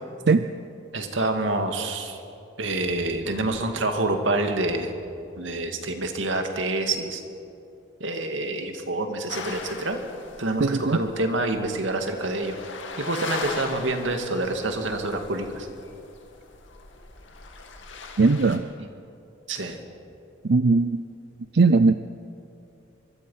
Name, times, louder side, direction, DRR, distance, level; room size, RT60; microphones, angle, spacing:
voice 1, 0.9-2.2 2.6-4.9 5.4-7.2 8.0-10.0 10.4-12.6 13.0-15.7 18.8-18.9 19.5-19.8, right 2 dB, 85° right, 5 dB, 2.2 m, -27 dB
sound 1, 9.3-18.6, left 4 dB, 85° left, 2.3 m, -39 dB
voice 2, 10.6-11.0 18.2-18.6 20.4-21.0 21.5-21.9, right 3 dB, 60° right, 11 dB, 0.5 m, -19 dB
24.5 x 23.0 x 5.7 m, 2.6 s
head